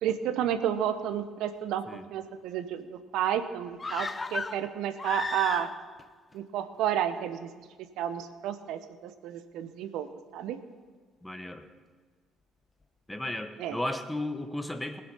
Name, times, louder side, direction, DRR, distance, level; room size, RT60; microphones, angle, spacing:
voice 1, 0.0-1.9 2.1-5.7 6.3-7.5 8.0-10.1 10.3-10.6 13.6-13.8, right 10 dB, 70° right, 11 dB, 0.9 m, -31 dB
sound 1, 3.8-6.0 6.3-6.4, left 3 dB, 30° left, 0.6 m, -35 dB
voice 2, 11.2-11.7 13.1-15.0, left 1 dB, 10° left, 8 dB, 1.4 m, -34 dB
20.0 x 6.8 x 5.6 m, 1.5 s
hypercardioid pair, 55°, 0 cm